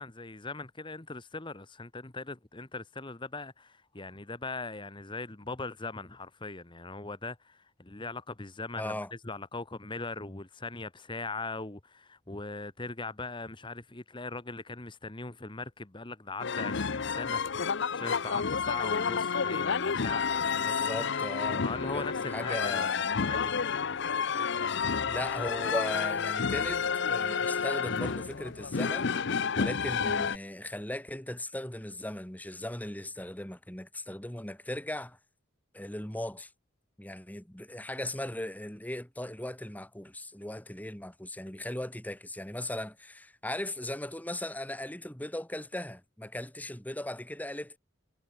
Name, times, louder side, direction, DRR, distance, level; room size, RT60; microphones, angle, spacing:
voice 1, 0.0-9.0 9.2-21.2 21.6-24.2, left 3 dB, 25° left, 1.2 m, -40 dB
voice 2, 8.8-9.1 20.4-21.6 21.9-22.0 22.3-23.0 25.0-29.1 29.5-35.2 35.7-36.5 37.0-47.8, left 1 dB, 10° left, 1.4 m, -38 dB
sound 1, 16.4-30.4, left 6 dB, 60° left, 0.7 m, -30 dB
head